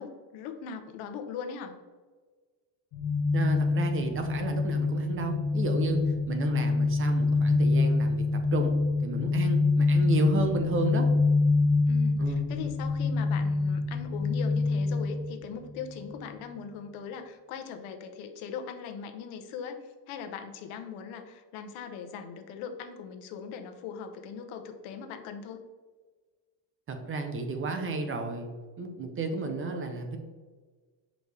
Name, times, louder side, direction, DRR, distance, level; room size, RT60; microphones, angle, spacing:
voice 1, 0.0-1.7 10.5-10.9 11.9-25.6, left 6 dB, 90° left, 6 dB, 1.0 m, -40 dB
sound 1, 2.9-16.0, left 3 dB, 55° left, 1.0 m, -26 dB
voice 2, 3.3-8.7 9.0-11.1 12.2-12.4 26.9-28.5 28.8-30.2, right 3 dB, 25° right, 6 dB, 0.5 m, -32 dB
6.2 x 5.1 x 3.3 m, 1.4 s
cardioid pair, 165°, 48 cm